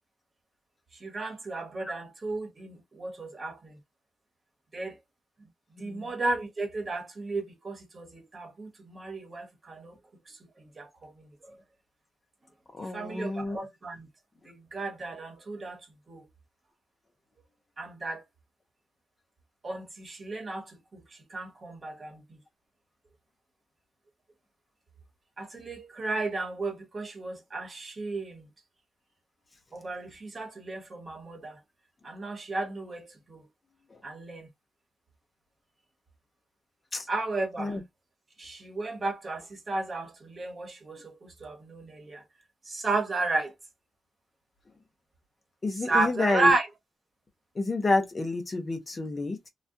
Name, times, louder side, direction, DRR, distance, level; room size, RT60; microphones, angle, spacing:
voice 1, 1.0-3.7 4.7-4.9 5.8-9.9 10.8-11.3 12.9-14.1 14.4-15.8 16.1-16.2 17.8-18.2 19.6-21.0 21.3-22.2 25.4-28.5 29.7-31.6 32.0-33.0 33.3-33.4 34.0-34.5 37.1-37.7 38.4-41.1 41.4-42.2 42.7-43.5 45.9-46.7, right 3 dB, 30° right, 1.1 m, -33 dB
voice 2, 12.7-13.6 33.9-34.0 36.9-37.1 37.6-37.8 45.6-46.5 47.5-49.5, left 2 dB, 30° left, 0.8 m, -29 dB
2.3 x 2.3 x 2.6 m
cardioid pair, 125°, 0 cm